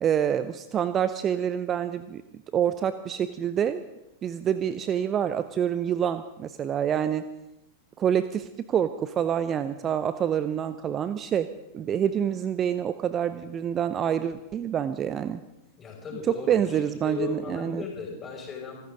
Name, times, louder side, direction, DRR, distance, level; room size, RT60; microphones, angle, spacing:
voice 1, 0.0-2.2 2.5-3.8 4.2-7.2 8.0-11.5 11.7-15.4 16.5-17.8, right 9 dB, 25° right, 13 dB, 0.6 m, -27 dB
voice 2, 15.8-16.8 17.0-18.8, left 5 dB, 20° left, -1 dB, 6.4 m, -36 dB
25.5 x 13.5 x 3.9 m, 0.89 s
figure-of-eight pair, 90°, 0 cm